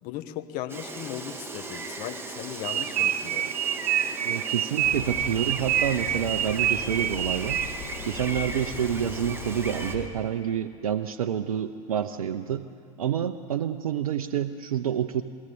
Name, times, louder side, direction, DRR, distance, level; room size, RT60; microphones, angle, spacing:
voice 1, 0.0-3.5, left 12 dB, 50° left, 9 dB, 1.4 m, -37 dB
Gull seagull, 0.7-10.0, right 2 dB, 15° right, 2.6 m, -37 dB
sound 1, 2.6-8.0, right 12 dB, 40° right, 0.7 m, -27 dB
voice 2, 4.2-7.6 8.0-12.6 13.0-15.2, right 9 dB, 80° right, 8 dB, 0.8 m, -28 dB
sound 2, 4.8-10.1, left 6 dB, 75° left, 3.7 m, -39 dB
22.0 x 17.5 x 8.5 m, 2.5 s
hypercardioid pair, 85°, 18 cm